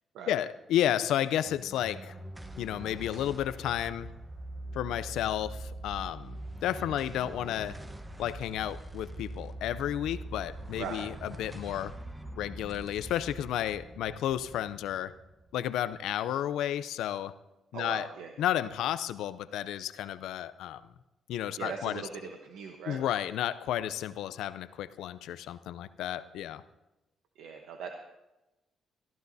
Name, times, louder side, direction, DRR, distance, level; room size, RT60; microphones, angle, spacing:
voice 1, 0.3-2.1 2.6-4.1 4.7-7.8 8.2-11.9 12.4-15.1 15.5-17.3 17.7-18.1 18.4-20.8 21.3-22.0 22.9-26.6, left 11 dB, 85° left, 14 dB, 0.5 m, -32 dB
sound 1, 1.5-16.0, right 1 dB, 10° right, 1.0 m, -43 dB
voice 2, 10.8-11.1 17.7-18.3 21.6-23.0 27.3-28.0, right 6 dB, 85° right, 3 dB, 1.0 m, -40 dB
21.5 x 14.0 x 2.7 m, 1.0 s
cardioid pair, 80°, 0 cm